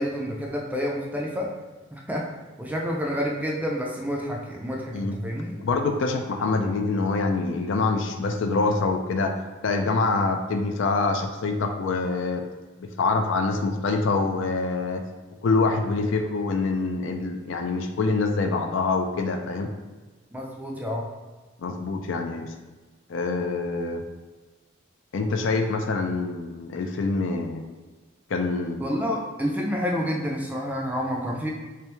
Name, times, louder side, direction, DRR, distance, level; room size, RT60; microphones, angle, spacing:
voice 1, 0.0-1.5 1.9-2.3 2.6-5.5 20.3-21.1 28.8-31.5, equal, 10° right, -1 dB, 0.4 m, -29 dB
voice 2, 5.6-9.4 9.6-12.5 12.8-15.0 15.4-19.7 21.6-22.5 23.1-24.0 25.1-27.6 28.3-28.9, left 3 dB, 65° left, 5 dB, 0.4 m, -25 dB
3.3 x 3.3 x 3.0 m, 1.3 s
head